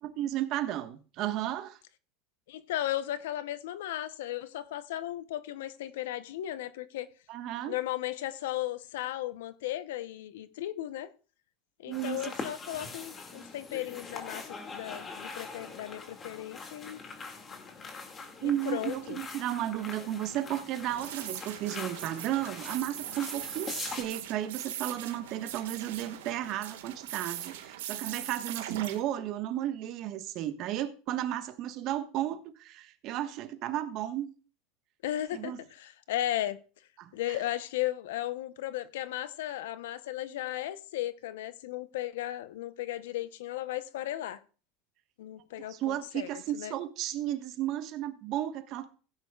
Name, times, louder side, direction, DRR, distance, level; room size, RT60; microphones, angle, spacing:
voice 1, 0.0-1.8 7.3-7.8 11.9-12.5 18.4-34.3 35.3-35.6 37.0-37.4 45.6-48.9, right 12 dB, 50° right, 1.4 m, -34 dB
voice 2, 2.5-7.1 7.7-11.1 11.8-14.4 14.7-17.0 18.4-19.2 35.0-36.6 37.1-44.4 45.2-46.8, left 13 dB, 85° left, 0.8 m, -35 dB
sound 1, 11.9-24.0, left 4 dB, 25° left, 2.2 m, -43 dB
sound 2, 20.9-29.0, right 11 dB, 85° right, 1.7 m, -41 dB
16.5 x 9.6 x 2.4 m
supercardioid pair, 120°, 0 cm